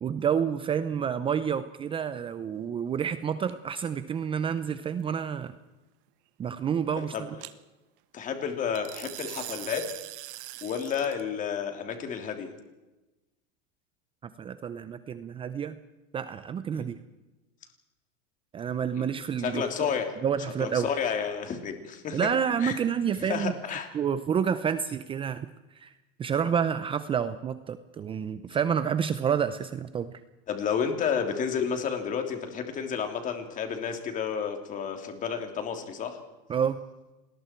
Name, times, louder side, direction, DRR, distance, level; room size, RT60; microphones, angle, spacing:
voice 1, 0.0-5.5 6.4-7.3 14.2-15.8 16.1-17.0 18.5-19.9 20.2-20.9 22.1-23.5 23.9-25.5 25.8-25.9 26.2-30.1 36.5-36.8, right 7 dB, 20° right, 12 dB, 0.7 m, -29 dB
sound 1, 3.5-3.9 7.4-7.5 8.7-11.2, right 17 dB, 65° right, 1.4 m, -41 dB
voice 2, 8.1-9.9 10.6-12.5 16.7-16.9 18.9-19.1 19.4-20.1 20.6-22.3 22.6-22.8 23.2-23.9 30.5-36.2, left 7 dB, 25° left, 5 dB, 3.3 m, -31 dB
28.0 x 21.0 x 4.6 m, 1.1 s
supercardioid pair, 150°, 29 cm